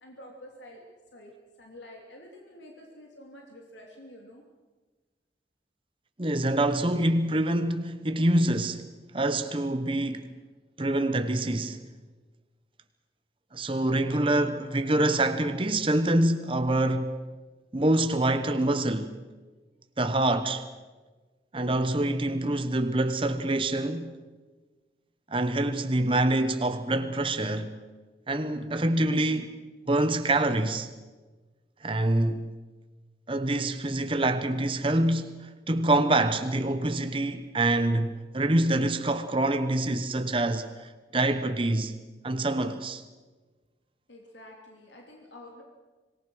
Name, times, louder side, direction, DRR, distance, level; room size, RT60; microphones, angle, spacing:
voice 1, 0.0-0.8 1.1-1.3 1.6-4.4 44.1-45.6, left 1 dB, 85° left, 2.9 m, -48 dB
voice 2, 6.2-8.8 9.1-10.3 10.8-11.8 13.5-17.1 17.7-19.1 20.0-20.7 21.5-24.2 25.3-27.7 28.3-29.6 29.9-30.9 31.8-32.5 33.3-41.9 42.2-43.0, right 1 dB, 30° right, 1.0 m, -26 dB
26.0 x 19.0 x 6.3 m
head